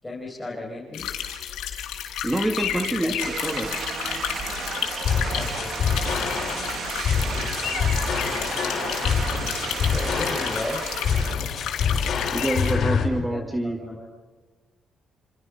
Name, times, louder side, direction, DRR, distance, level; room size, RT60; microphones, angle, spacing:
voice 1, 0.0-1.5 3.0-3.2 5.3-6.5 7.0-8.1 9.9-11.0 13.2-14.1, left 2 dB, 15° left, -2 dB, 6.0 m, -36 dB
sound 1, 0.9-12.7, left 9 dB, 90° left, 4.9 m, -32 dB
voice 2, 2.2-3.7 12.3-13.8, right 1 dB, 10° right, 5 dB, 2.1 m, -26 dB
sound 2, 3.2-11.3, right 7 dB, 65° right, 2.4 m, -33 dB
sound 3, 5.0-13.0, left 6 dB, 65° left, 6.5 m, -26 dB
30.0 x 27.5 x 5.6 m, 1.4 s
cardioid pair, 90°, 0 cm